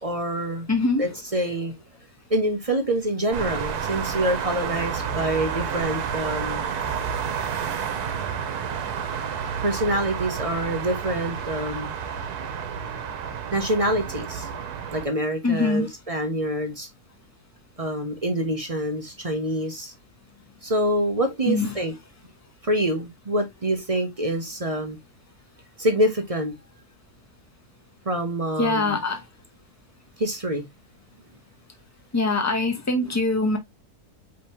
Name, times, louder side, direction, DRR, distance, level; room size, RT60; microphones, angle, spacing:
voice 1, 0.0-0.7 1.0-1.7 2.3-6.7 9.6-12.0 13.5-14.5 14.9-16.9 17.8-19.9 20.6-21.9 22.6-25.0 25.8-26.5 28.1-29.0 30.2-30.6, right 1 dB, 30° right, 0.7 m, -26 dB
voice 2, 0.7-1.1 15.4-15.9 21.5-21.7 28.6-29.2 32.1-33.6, left 3 dB, 15° left, 0.7 m, -23 dB
sound 1, 3.3-15.1, right 7 dB, 85° right, 1.3 m, -30 dB
5.0 x 3.3 x 2.8 m
omnidirectional pair, 1.6 m